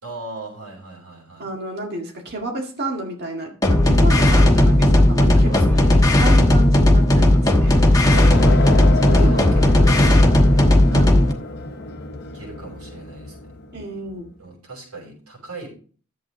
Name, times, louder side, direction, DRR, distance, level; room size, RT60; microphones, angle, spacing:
voice 1, 0.0-1.5 5.3-6.1 8.5-10.7 12.3-13.5 14.4-15.7, right 2 dB, 85° right, 0 dB, 6.1 m, -38 dB
voice 2, 1.4-7.7 8.9-10.3 10.9-11.3 13.7-14.3, right 1 dB, 45° right, 1 dB, 1.9 m, -31 dB
sound 1, 3.6-11.3, left 1 dB, 15° left, 1.1 m, -14 dB
sound 2, 7.7-14.0, left 3 dB, 50° left, 1.0 m, -29 dB
11.5 x 7.7 x 3.9 m, 0.42 s
head